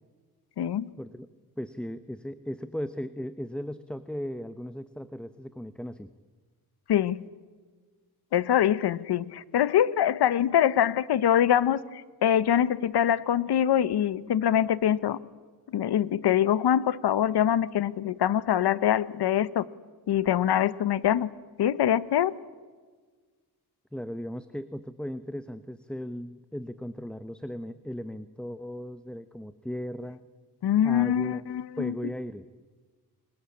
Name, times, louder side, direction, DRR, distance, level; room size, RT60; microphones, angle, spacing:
voice 1, 0.6-0.9 6.9-7.2 8.3-15.2 15.7-19.7 20.1-21.3 21.6-22.3 30.6-31.9, left 10 dB, 80° left, 18 dB, 1.0 m, -24 dB
voice 2, 1.6-6.1 23.9-30.2 30.8-31.5 31.8-32.5, equal, ahead, 12 dB, 0.8 m, -37 dB
30.0 x 21.5 x 8.6 m, 1.5 s
wide cardioid pair, 110°, 39 cm